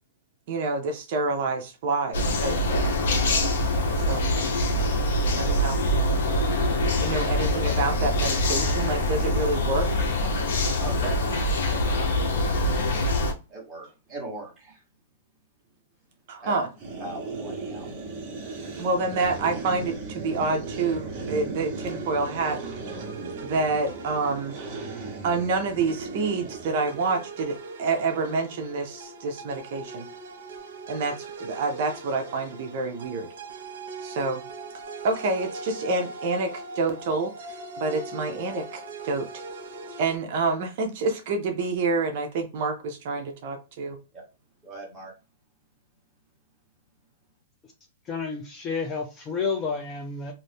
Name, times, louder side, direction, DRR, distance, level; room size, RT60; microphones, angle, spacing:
voice 1, 0.5-2.9 3.9-4.3 5.3-5.8 7.0-9.9 16.3-16.7 18.8-22.6 23.4-24.5 25.2-30.1 30.9-33.3 34.0-34.4 35.0-39.3 40.0-44.0, right 3 dB, 45° right, 0.6 m, -28 dB
sound 1, 2.1-13.3, left 1 dB, 70° left, 0.8 m, -24 dB
voice 2, 10.8-13.2 13.5-14.8 16.4-16.6 17.0-17.9 44.1-44.2 44.6-45.1, right 2 dB, 10° right, 1.3 m, -40 dB
sound 2, 16.8-27.2, right 3 dB, 25° right, 1.0 m, -36 dB
sound 3, 21.7-40.2, right 3 dB, 65° right, 0.9 m, -41 dB
voice 3, 48.1-50.3, left 5 dB, 15° left, 0.5 m, -30 dB
2.6 x 2.5 x 3.4 m
hypercardioid pair, 165°, 0 cm